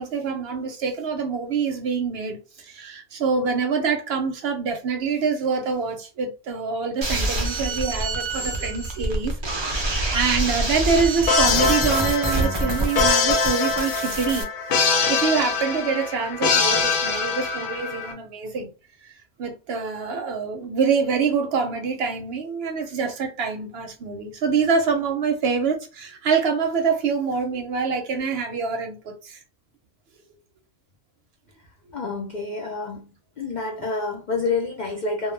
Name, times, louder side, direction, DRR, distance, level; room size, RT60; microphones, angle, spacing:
voice 1, 0.0-14.5 15.1-18.7 19.0-19.1 19.4-29.4, right 5 dB, 65° right, 0.7 m, -25 dB
sound 1, 7.0-14.4, right 2 dB, 50° right, 0.3 m, -26 dB
sound 2, 11.3-18.1, left 4 dB, 85° left, 1.0 m, -23 dB
voice 2, 31.9-33.1 33.4-35.3, left 3 dB, 60° left, 0.4 m, -28 dB
2.2 x 2.1 x 3.1 m
omnidirectional pair, 1.3 m